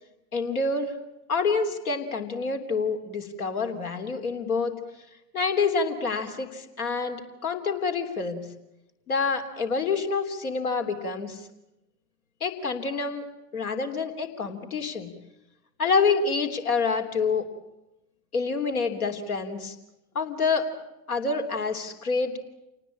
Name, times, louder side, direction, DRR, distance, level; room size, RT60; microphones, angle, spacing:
voice 1, 0.3-0.9 1.3-4.7 5.3-8.4 9.1-11.4 12.4-13.2 13.5-15.1 15.8-17.5 18.3-19.8 20.2-20.7 21.1-22.4, left 4 dB, 75° left, 5 dB, 3.4 m, -27 dB
28.0 x 19.0 x 8.9 m, 0.94 s
figure-of-eight pair, 90°, 44 cm